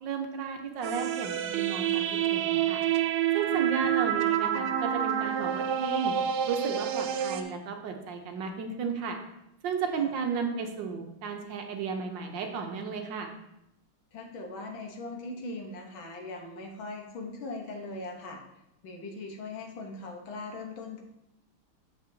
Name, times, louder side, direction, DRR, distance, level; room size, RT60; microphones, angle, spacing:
voice 1, 0.0-2.8 3.3-6.1 6.5-9.2 9.6-13.3, right 5 dB, 70° right, 4 dB, 1.3 m, -33 dB
sound 1, 0.8-7.4, right 10 dB, 85° right, 1.5 m, -28 dB
voice 2, 3.5-3.9 10.0-10.1 14.1-18.4 18.8-21.0, left 2 dB, 70° left, 2 dB, 1.7 m, -40 dB
7.9 x 7.0 x 2.7 m, 0.85 s
omnidirectional pair, 2.3 m